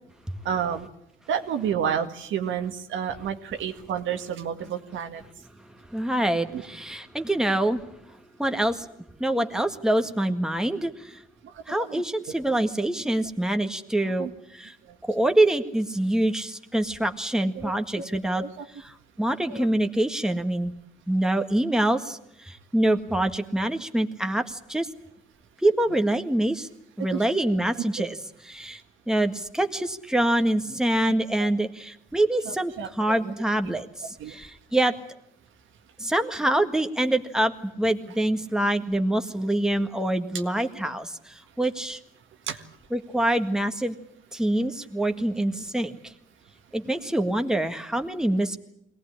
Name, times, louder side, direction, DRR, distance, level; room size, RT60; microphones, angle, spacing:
voice 1, 0.5-0.9 1.3-5.2 6.5-6.6 11.4-11.6 11.9-12.0 14.2-14.3 14.9-15.0 15.2-15.3 17.6-18.1 18.3-18.7 19.5-19.7 27.0-27.2 31.1-31.5 32.8-33.3 33.7-33.8 34.2-34.4 42.5-42.6, right 8 dB, 80° right, 6 dB, 1.9 m, -30 dB
voice 2, 5.9-7.8 8.4-8.9 9.2-11.2 11.7-14.7 15.0-18.4 19.2-20.7 21.1-24.9 25.6-26.7 27.0-28.2 28.4-28.8 29.1-34.9 36.0-42.0 42.9-43.9 44.3-46.1 46.7-48.6, right 1 dB, 5° right, 6 dB, 1.7 m, -25 dB
22.5 x 17.5 x 10.0 m, 0.76 s
cardioid pair, 90°, 20 cm